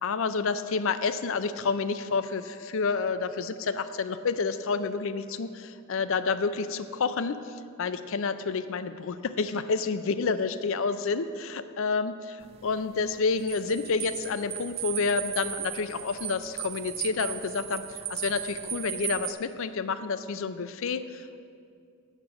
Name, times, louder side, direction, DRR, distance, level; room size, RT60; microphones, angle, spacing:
voice 1, 0.0-7.4 7.8-21.5, left 4 dB, 65° left, 12 dB, 0.5 m, -29 dB
sound 1, 12.4-19.3, right 11 dB, 25° right, 0.3 m, -36 dB
8.9 x 7.1 x 6.3 m, 2.4 s
head